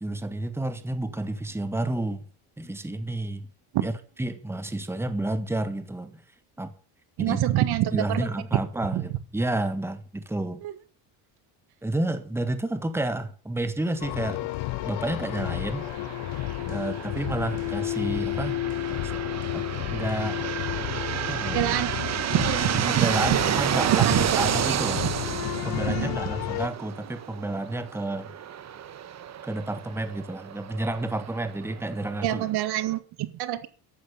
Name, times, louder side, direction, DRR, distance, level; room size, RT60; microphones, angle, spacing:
voice 1, 0.0-2.3 2.6-3.5 3.8-3.9 4.2-6.2 6.6-6.7 7.2-7.4 7.9-10.6 11.8-14.5 14.9-15.9 16.7-18.6 19.0-19.2 19.5-20.5 21.1-21.8 22.7-25.1 25.7-28.3 29.4-32.5, right 2 dB, 5° right, 10 dB, 1.7 m, -30 dB
voice 2, 7.2-8.3 8.9-9.0 10.6-10.7 21.5-21.9 22.3-23.4 23.9-24.3 25.0-25.1 25.9-26.2 32.2-33.7, right 14 dB, 70° right, 13 dB, 1.7 m, -26 dB
sound 1, 14.0-26.7, left 18 dB, 75° left, 0.6 m, -32 dB
sound 2, 15.4-32.9, right 9 dB, 40° right, 1.3 m, -31 dB
13.5 x 12.0 x 6.9 m, 0.39 s
cardioid pair, 125°, 40 cm